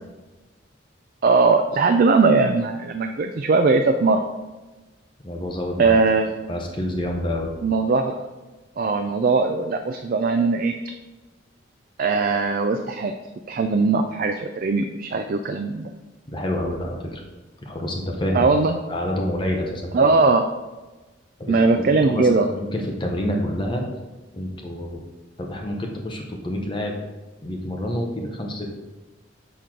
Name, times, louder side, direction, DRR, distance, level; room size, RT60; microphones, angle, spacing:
voice 1, 1.2-4.2 5.8-6.3 7.6-8.3 8.8-10.7 12.0-13.2 13.5-15.9 18.3-18.8 19.9-20.4 21.5-22.5, right 4 dB, 45° right, 6 dB, 0.3 m, -20 dB
voice 2, 5.2-6.0 6.5-7.5 16.3-17.2 17.6-18.5 18.9-20.1 21.4-21.5 22.0-23.8 24.3-25.0 25.4-27.0 27.4-28.8, left 1 dB, 25° left, 1 dB, 0.9 m, -28 dB
6.7 x 6.0 x 3.7 m, 1.2 s
head